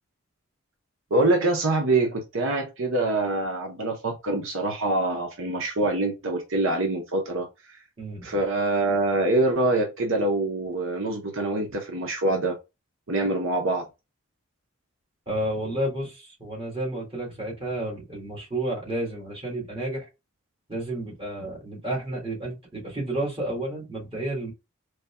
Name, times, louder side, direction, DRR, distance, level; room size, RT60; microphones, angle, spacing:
voice 1, 1.1-7.8 8.2-12.6 13.1-13.8, right 2 dB, 70° right, 0.9 m, -25 dB
voice 2, 8.0-8.3 15.3-20.1 20.7-24.5, right 1 dB, 25° right, 2.1 m, -31 dB
4.0 x 3.4 x 2.2 m
head